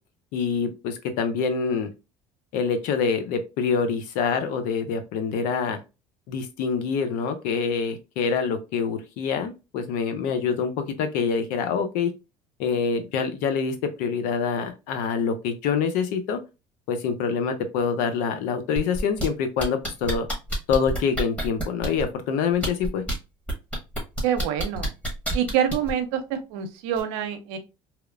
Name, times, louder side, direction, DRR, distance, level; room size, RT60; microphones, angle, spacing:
voice 1, 0.3-1.9 2.5-5.8 6.3-12.1 12.6-16.4 16.9-20.3 20.7-23.0, left 6 dB, 75° left, 8 dB, 0.6 m, -26 dB
sound 1, 18.8-19.3 19.6-22.0 22.5-23.1 23.5-25.9 27.0-27.1, equal, 10° left, 1.2 m, -28 dB
voice 2, 24.2-24.9 25.3-27.6, right 9 dB, 85° right, 8 dB, 0.6 m, -26 dB
2.9 x 2.1 x 2.4 m, 0.27 s
supercardioid pair, 100°, 14 cm